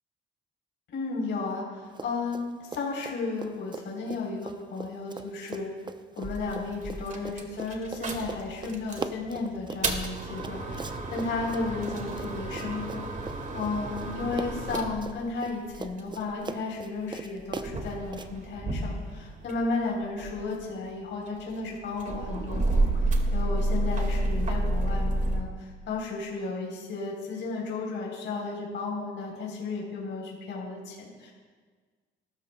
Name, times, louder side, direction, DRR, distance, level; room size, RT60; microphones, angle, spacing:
voice 1, 0.9-5.7 6.2-13.0 13.5-31.3, left 3 dB, 75° left, -3 dB, 3.6 m, -34 dB
Run, 1.9-2.5 2.7-14.1 14.3-18.3, right 4 dB, 25° right, 0.6 m, -40 dB
sound 1, 6.2-9.1 9.6-16.3 17.1-19.7 20.0-25.4, right 2 dB, 40° right, 1.9 m, -30 dB
20.5 x 13.0 x 2.2 m, 1.5 s
cardioid pair, 90°, 20 cm